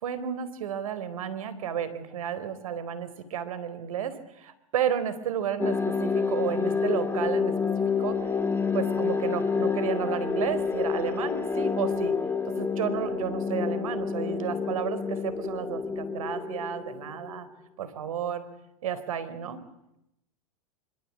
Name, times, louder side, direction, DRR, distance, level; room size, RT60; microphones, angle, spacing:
voice 1, 0.0-7.5 8.0-8.3 8.7-12.1 12.6-17.5 17.8-18.5 18.8-19.6, right 9 dB, 75° right, 14 dB, 4.2 m, -32 dB
sound 1, 5.6-17.4, left 5 dB, 15° left, 2.5 m, -28 dB
27.0 x 24.5 x 8.6 m, 0.84 s
hypercardioid pair, 100°, 18 cm